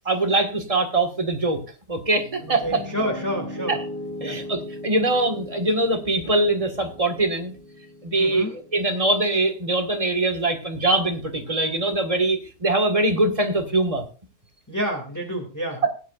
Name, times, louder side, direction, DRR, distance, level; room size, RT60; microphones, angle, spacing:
voice 1, 0.0-1.6 1.9-2.8 3.7-3.8 4.2-7.5 8.0-14.0 15.8-15.9, right 2 dB, 20° right, 4 dB, 1.7 m, -23 dB
Piano, 2.1-10.2, left 1 dB, 55° left, 5.1 m, -38 dB
voice 2, 2.6-3.8 4.2-4.4 8.1-8.5 14.7-15.9, equal, 10° left, 1 dB, 2.4 m, -29 dB
19.0 x 9.0 x 2.5 m, 0.36 s
omnidirectional pair, 1.8 m